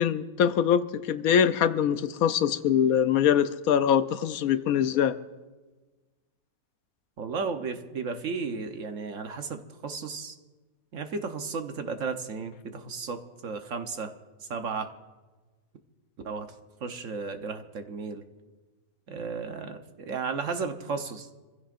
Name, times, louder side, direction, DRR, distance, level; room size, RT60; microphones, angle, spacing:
voice 1, 0.0-5.2, left 8 dB, 75° left, 12 dB, 1.1 m, -23 dB
voice 2, 7.2-10.3 10.9-14.1 14.4-14.9 16.2-16.5 16.8-18.2 19.1-21.4, right 5 dB, 60° right, 6 dB, 1.3 m, -34 dB
25.5 x 15.5 x 2.5 m, 1.3 s
omnidirectional pair, 1.5 m